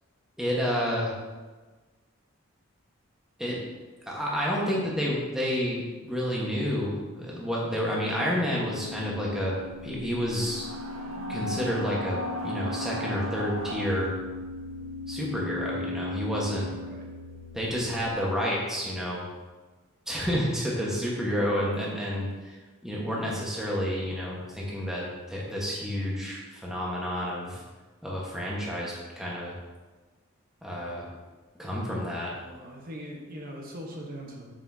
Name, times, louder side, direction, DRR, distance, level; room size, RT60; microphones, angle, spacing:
voice 1, 0.4-1.1 3.4-3.6 4.1-10.7 11.3-14.1 15.1-16.7 17.5-19.2 20.1-27.6 28.0-29.5 30.6-31.1 31.6-32.3, equal, ahead, -5 dB, 1.2 m, -30 dB
sound 1, 8.0-18.2, left 2 dB, 80° left, 0.4 m, -38 dB
sound 2, 10.3-13.9, equal, 65° right, 0.7 m, -37 dB
voice 2, 32.4-34.5, equal, 40° right, -1 dB, 1.0 m, -41 dB
6.8 x 5.9 x 2.7 m, 1.3 s
head